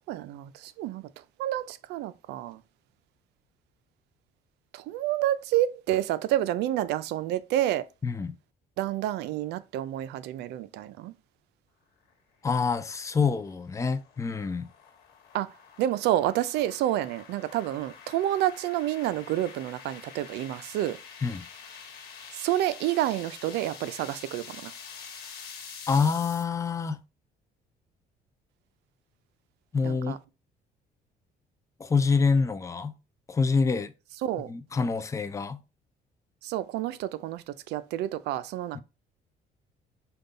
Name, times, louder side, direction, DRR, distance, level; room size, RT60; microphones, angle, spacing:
voice 1, 0.1-1.0 1.4-2.6 4.7-7.9 8.8-11.1 15.3-15.5 15.8-21.0 22.3-24.7 29.8-30.2 34.2-34.5 36.4-38.8, right 13 dB, 80° right, 0.4 m, -29 dB
voice 2, 8.0-8.4 12.4-14.6 21.2-21.4 25.9-27.0 29.7-30.2 31.8-33.0 33.3-33.9 34.5-35.6 38.7-38.8, left 5 dB, 20° left, 0.4 m, -26 dB
sound 1, 12.9-26.4, left 6 dB, 75° left, 1.3 m, -47 dB
5.2 x 2.3 x 3.9 m
cardioid pair, 110°, 17 cm